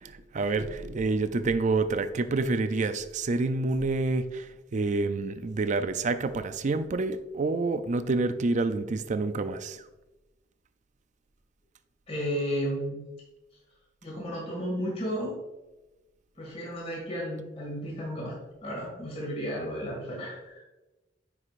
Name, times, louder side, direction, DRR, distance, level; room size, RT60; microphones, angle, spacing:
voice 1, 0.0-9.8, right 3 dB, 40° right, 10 dB, 0.4 m, -28 dB
voice 2, 12.1-13.0 14.0-15.4 16.4-18.3 18.6-20.6, equal, 35° left, -4 dB, 2.1 m, -33 dB
9.6 x 4.9 x 2.5 m, 1.1 s
head